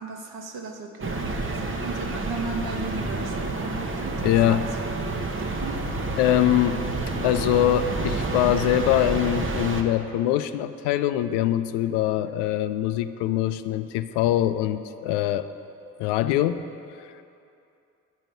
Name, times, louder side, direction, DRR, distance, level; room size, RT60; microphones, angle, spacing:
voice 1, 0.0-4.8 5.4-5.8, right 3 dB, 55° right, 2 dB, 1.4 m, -36 dB
sound 1, 1.0-9.8, right 2 dB, 30° right, 1.0 m, -29 dB
voice 2, 4.2-4.6 6.2-6.9 7.2-15.5 16.0-16.6 17.0-17.1, left 12 dB, 70° left, 11 dB, 0.5 m, -23 dB
9.3 x 5.2 x 7.6 m, 2.6 s
hypercardioid pair, 45°, 43 cm